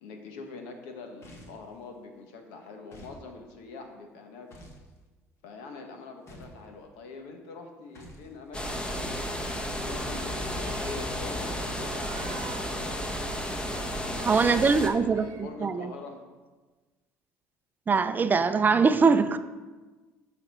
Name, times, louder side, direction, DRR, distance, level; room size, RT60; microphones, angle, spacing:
voice 1, 0.0-4.5 5.4-9.4 9.8-13.0 13.6-16.2, left 4 dB, 85° left, 4 dB, 1.2 m, -44 dB
sound 1, 1.2-1.7 2.9-3.2 4.5-4.9 6.3-6.7 7.9-8.3 9.9-10.3, equal, 45° left, 1.5 m, -49 dB
sound 2, 8.5-14.9, equal, 15° left, 1.0 m, -33 dB
sound 3, 10.5-11.2 11.9-12.7 13.5-14.3 15.0-15.6, right 8 dB, 75° right, 0.7 m, -47 dB
voice 2, 14.3-15.9 17.9-19.4, right 5 dB, 30° right, 11 dB, 0.5 m, -22 dB
9.0 x 4.1 x 5.4 m, 1.3 s
supercardioid pair, 85°, 6 cm